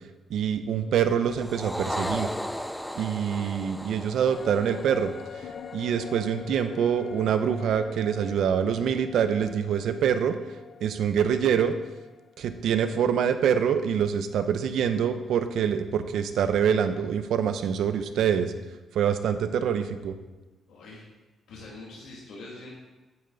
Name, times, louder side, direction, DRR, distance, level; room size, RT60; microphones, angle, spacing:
voice 1, 0.3-2.3 2.9-5.1 5.7-10.4 10.8-11.7 12.4-18.5 18.9-20.1, right 8 dB, 80° right, 10 dB, 0.7 m, -25 dB
sound 1, 1.3-5.9, equal, ahead, 0.4 m, -35 dB
sound 2, 4.2-13.7 14.0-14.1, left 6 dB, 65° left, 0.7 m, -44 dB
voice 2, 20.7-21.0 21.5-22.7, left 2 dB, 90° left, -5 dB, 2.3 m, -43 dB
8.9 x 8.9 x 4.0 m, 1.1 s
cardioid pair, 130°, 0 cm